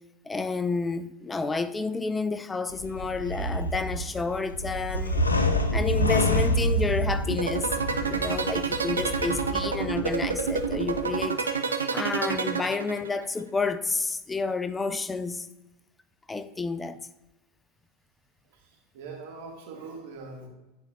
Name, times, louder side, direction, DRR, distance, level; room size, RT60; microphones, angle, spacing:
voice 1, 0.2-5.3 5.7-7.7 8.0-11.4 11.9-15.5 16.3-17.0, left 4 dB, 15° left, 0.3 m, -30 dB
sound 1, 2.7-11.2, left 1 dB, 85° left, 0.4 m, -28 dB
sound 2, 7.3-13.2, right 6 dB, 80° right, 0.5 m, -28 dB
voice 2, 18.5-20.5, right 3 dB, 60° right, 1.4 m, -42 dB
10.5 x 4.2 x 2.8 m
figure-of-eight pair, 85°, 0 cm